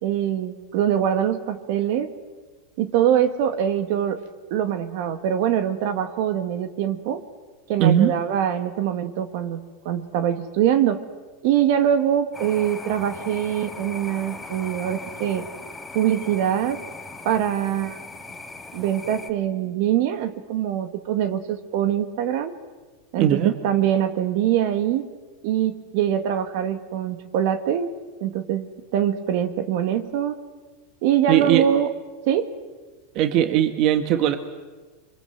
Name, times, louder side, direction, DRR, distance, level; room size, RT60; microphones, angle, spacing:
voice 1, 0.0-2.1 2.8-4.2 4.5-7.2 7.7-11.0 11.4-15.4 15.9-16.8 17.2-18.0 18.7-22.5 23.1-23.4 23.6-25.1 25.4-27.9 28.2-30.4 31.0-31.9 32.3-32.5, right 10 dB, 60° right, 9 dB, 1.9 m, -23 dB
voice 2, 7.8-8.1 23.2-23.5 31.3-31.7 33.1-34.4, right 11 dB, 45° right, 8 dB, 1.7 m, -19 dB
sound 1, 12.3-19.3, left 3 dB, 5° left, 1.6 m, -39 dB
26.5 x 24.0 x 8.0 m, 1.3 s
supercardioid pair, 135°, 0 cm